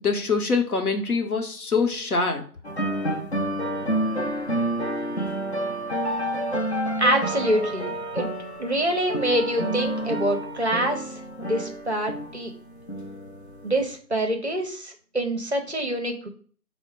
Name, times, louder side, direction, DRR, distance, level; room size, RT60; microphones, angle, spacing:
voice 1, 0.0-2.4, left 4 dB, 60° left, 4 dB, 0.9 m, -24 dB
sound 1, 2.6-14.0, right 1 dB, 45° left, 0.5 m, -29 dB
voice 2, 7.0-8.3 8.6-11.2 11.5-12.5 13.6-16.3, right 1 dB, 45° right, 4 dB, 0.5 m, -25 dB
4.3 x 2.1 x 4.5 m, 0.43 s
figure-of-eight pair, 160°, 49 cm